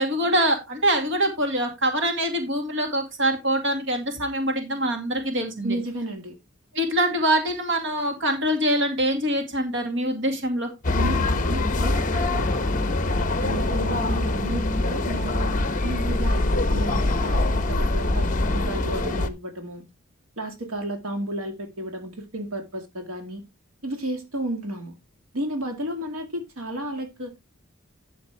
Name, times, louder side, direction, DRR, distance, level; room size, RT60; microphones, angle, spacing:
voice 1, 0.0-5.8 6.7-10.7, right 1 dB, 60° right, 2.2 m, -24 dB
voice 2, 5.6-6.3 11.0-12.7 13.4-18.3 18.5-19.9 20.4-23.4 23.8-24.9 25.3-27.3, right 1 dB, 80° right, 2.3 m, -32 dB
sound 1, 10.8-19.3, left 2 dB, 35° left, 1.0 m, -24 dB
11.5 x 7.0 x 3.4 m
head